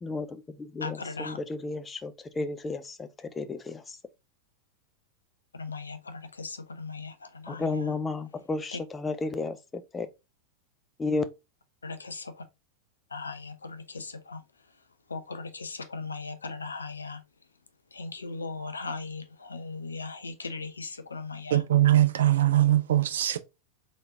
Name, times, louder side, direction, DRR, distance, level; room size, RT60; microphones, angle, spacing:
voice 1, 0.0-4.0 7.5-10.1 11.0-11.2, left 3 dB, 15° left, 0.5 m, -33 dB
voice 2, 0.8-1.4 5.5-7.9 8.7-8.8 11.8-12.4 13.1-14.4 14.7-14.8 15.1-17.2 17.9-21.6, left 4 dB, 75° left, 0.6 m, -38 dB
voice 3, 21.5-23.4, right 13 dB, 60° right, 0.5 m, -21 dB
3.8 x 3.3 x 2.6 m
figure-of-eight pair, 90°, 0 cm